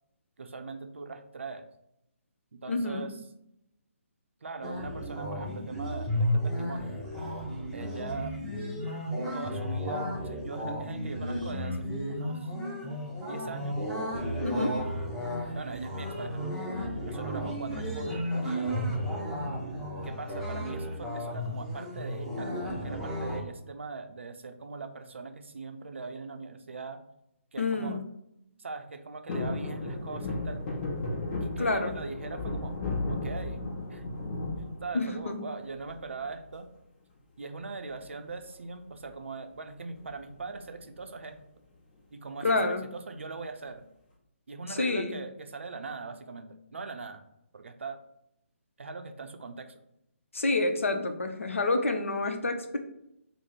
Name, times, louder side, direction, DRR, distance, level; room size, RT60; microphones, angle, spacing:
voice 1, 0.4-1.7 2.5-3.1 4.4-6.9 7.7-8.4 9.3-12.5 13.2-13.8 15.6-16.4 17.0-18.8 20.0-27.0 27.5-28.0 28.6-30.6 31.4-32.7 33.1-33.6 33.9-34.0 34.8-36.7 37.4-41.4 42.1-43.8 44.5-47.2 47.5-48.0 48.8-49.8, right 4 dB, 60° right, 7 dB, 0.5 m, -41 dB
voice 2, 2.7-3.1 14.4-14.9 27.6-28.0 31.6-31.9 34.9-35.5 42.4-42.8 44.7-45.2 50.3-52.8, left 2 dB, 70° left, 6 dB, 0.6 m, -28 dB
sound 1, 4.6-23.4, equal, ahead, 0.7 m, -33 dB
sound 2, 29.3-35.5 35.9-36.5 37.8-38.2 38.4-38.5 38.8-39.1 40.0-40.9 41.4-41.5, left 2 dB, 35° left, 0.9 m, -35 dB
3.5 x 2.0 x 4.3 m, 0.82 s
figure-of-eight pair, 140°, 7 cm